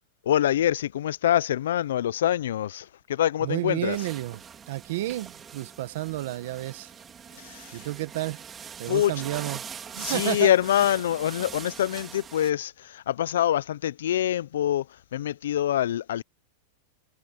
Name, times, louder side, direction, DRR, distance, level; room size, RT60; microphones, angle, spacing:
voice 1, 0.2-4.0 7.3-7.9 8.9-9.2 10.0-16.2, left 11 dB, 90° left, 0.4 m, -25 dB
voice 2, 3.4-6.9 7.7-8.4 8.8-9.6 9.9-10.5, right 17 dB, 60° right, 1.3 m, -31 dB
sound 1, 3.9-12.5, right 7 dB, 15° right, 2.7 m, -42 dB
supercardioid pair, 165°, 0 cm